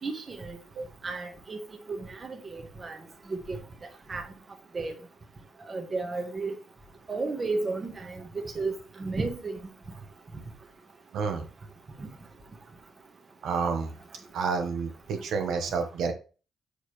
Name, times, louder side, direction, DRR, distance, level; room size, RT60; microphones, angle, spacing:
voice 1, 0.0-0.6 1.0-1.6 1.9-3.0 3.3-3.6 4.1-4.3 4.7-5.0 5.7-6.6 7.1-8.7 9.0-9.6 12.0-12.1, right 3 dB, 30° right, 1.4 m, -33 dB
voice 2, 11.1-11.4 13.4-13.9 14.3-16.1, right 5 dB, 70° right, 1.2 m, -29 dB
6.5 x 4.8 x 3.2 m
cardioid pair, 110°, 0 cm